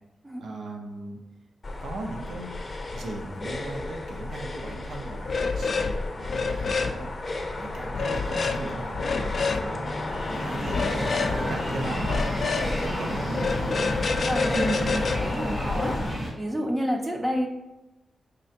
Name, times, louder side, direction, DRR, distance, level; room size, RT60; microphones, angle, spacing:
voice 1, 0.4-1.2 1.8-2.6 2.9-13.7, right 2 dB, 80° right, 2 dB, 0.7 m, -38 dB
sound 1, 1.6-16.1, left 2 dB, 35° left, 0.7 m, -33 dB
sound 2, 5.3-5.9 6.2-6.9 7.9-8.6 9.0-9.6 10.7-11.4 12.0-12.7 13.3-16.0, left 4 dB, 50° left, 0.3 m, -28 dB
sound 3, 10.1-16.3, right 1 dB, 55° right, 1.2 m, -33 dB
voice 2, 14.3-16.0 16.4-17.5, equal, 15° right, 2 dB, 0.5 m, -29 dB
5.1 x 3.3 x 2.8 m, 0.99 s
wide cardioid pair, 140°, 0 cm